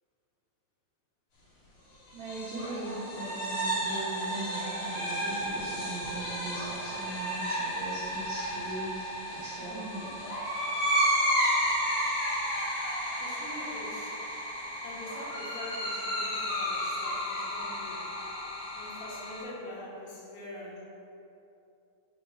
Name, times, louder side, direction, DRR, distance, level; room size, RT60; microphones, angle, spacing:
sound 1, 2.1-19.4, equal, 55° left, 1.9 m, -32 dB
voice 1, 2.1-10.1, right 1 dB, 85° right, -10 dB, 1.5 m, -40 dB
voice 2, 13.2-14.2 14.8-18.1 18.7-20.8, left 1 dB, 75° left, -9 dB, 2.9 m, -43 dB
7.2 x 3.1 x 5.4 m, 2.8 s
omnidirectional pair, 5.1 m